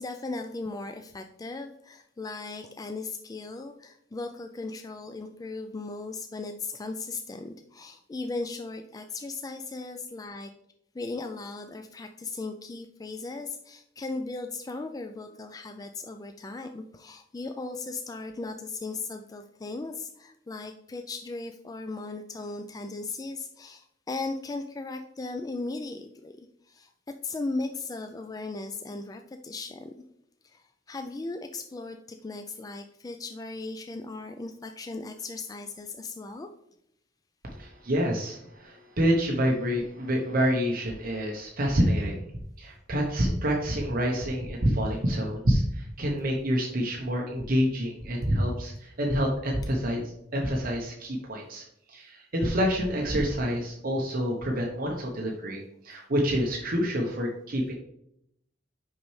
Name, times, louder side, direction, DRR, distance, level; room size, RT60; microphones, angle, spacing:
voice 1, 0.0-10.5 10.9-26.9 27.2-29.9 30.4-36.5, left 3 dB, 20° left, 6 dB, 0.3 m, -37 dB
voice 2, 37.4-42.2 42.6-57.7, equal, 50° right, -1 dB, 0.9 m, -27 dB
6.0 x 5.4 x 3.2 m, 0.76 s
head